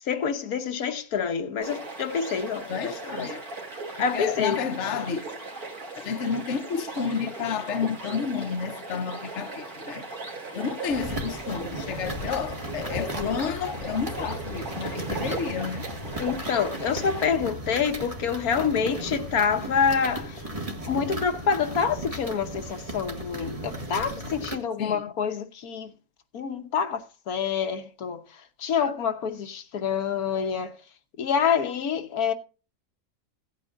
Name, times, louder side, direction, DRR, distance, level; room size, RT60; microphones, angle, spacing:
voice 1, 0.1-2.7 3.2-3.3 4.0-4.6 16.2-20.4 20.9-25.9 26.3-27.0 27.3-28.2 28.6-30.7 31.2-32.3, left 6 dB, 80° left, 1.5 m, -27 dB
sound 1, 1.6-17.3, right 3 dB, 90° right, 3.6 m, -38 dB
voice 2, 2.7-3.4 4.0-5.3 5.9-10.0 10.5-15.9 24.8-25.0, left 6 dB, 55° left, 1.2 m, -30 dB
sound 2, 10.9-24.6, right 1 dB, 25° right, 1.9 m, -36 dB
16.5 x 9.0 x 2.5 m
omnidirectional pair, 1.5 m